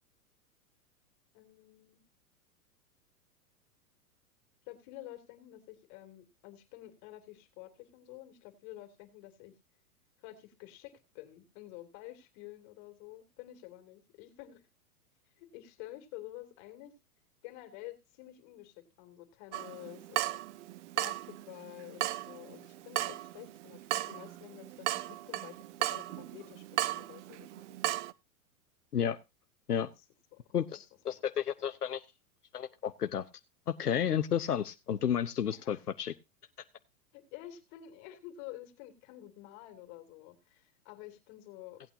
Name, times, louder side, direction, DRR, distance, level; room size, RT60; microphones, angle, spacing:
voice 1, 1.3-2.0 4.7-9.5 10.2-14.6 15.4-16.9 17.4-20.4 21.0-27.8 29.8-30.0 30.3-30.4 30.7-30.8 31.1-31.7 35.4-35.9 37.1-41.8, left 14 dB, 45° left, 6 dB, 2.6 m, -50 dB
Water tap faucet / Drip, 19.5-28.1, right 15 dB, 50° right, 0.7 m, -36 dB
voice 2, 30.5-32.0 32.5-33.3 33.8-36.1, left 9 dB, 90° left, 8 dB, 0.8 m, -32 dB
17.5 x 8.8 x 2.7 m, 0.25 s
hypercardioid pair, 105°, 45 cm